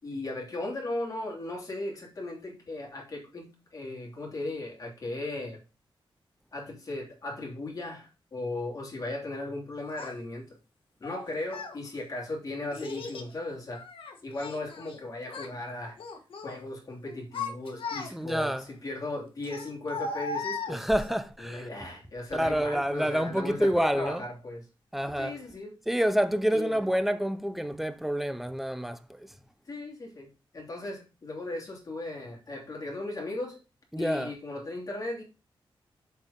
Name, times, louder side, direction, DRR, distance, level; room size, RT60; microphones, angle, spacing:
voice 1, 0.0-5.6 6.5-10.6 11.0-13.8 14.2-16.0 16.4-20.9 21.4-24.6 25.2-25.8 26.5-26.8 29.7-30.3 30.5-33.6 34.0-35.2, left 2 dB, 40° left, 3.0 m, -37 dB
Child speech kid speaking, 10.0-10.1 11.0-11.8 12.7-13.3 13.7-15.0 15.2-15.6 16.0-16.6 17.1-18.4 19.4-21.2, left 4 dB, 80° left, 1.5 m, -37 dB
voice 2, 18.1-18.7 20.7-21.7 22.3-24.2 24.9-25.4 25.9-29.3 33.9-34.3, equal, ahead, 0.6 m, -28 dB
7.2 x 4.6 x 5.2 m
wide cardioid pair, 140°, 9 cm